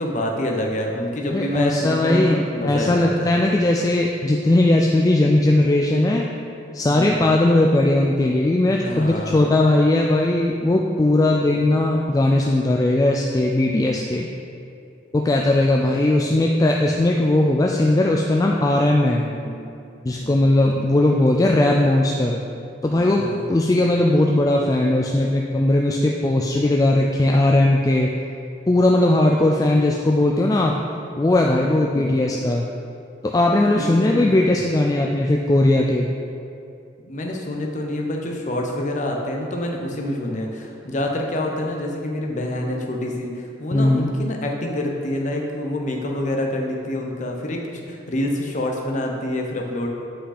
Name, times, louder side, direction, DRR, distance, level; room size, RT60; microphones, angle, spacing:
voice 1, 0.0-3.4 6.8-7.3 8.8-9.6 11.5-11.8 13.8-14.1 19.2-19.6 20.2-20.4 23.0-23.5 31.5-32.2 33.7-34.6 37.1-49.9, left 1 dB, 40° left, 1 dB, 0.8 m, -27 dB
voice 2, 1.3-6.3 6.7-14.3 15.1-19.3 20.0-22.4 22.8-28.1 28.7-30.8 31.2-32.7 33.2-36.1 43.7-44.1, left 1 dB, 20° left, -1 dB, 0.3 m, -18 dB
7.8 x 5.3 x 4.2 m, 2.5 s
head